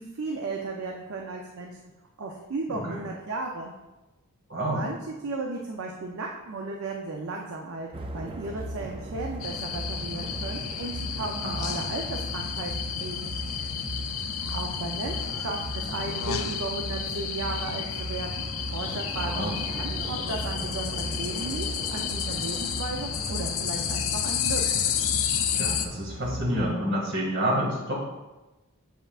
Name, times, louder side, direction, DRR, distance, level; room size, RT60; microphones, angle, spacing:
voice 1, 0.0-1.9 2.2-3.7 4.7-12.7 13.0-13.3 14.5-18.4 18.7-21.7 21.9-24.6, right 3 dB, 75° right, 0 dB, 0.5 m, -35 dB
voice 2, 2.7-3.0 4.5-4.8 11.4-11.7 19.2-19.5 25.5-27.9, equal, 60° right, -3 dB, 1.9 m, -28 dB
sound 1, 7.9-26.7, right 1 dB, 25° right, 0.3 m, -37 dB
sound 2, 9.4-25.9, left 8 dB, 70° left, 0.4 m, -31 dB
7.1 x 5.5 x 2.4 m, 1.1 s
head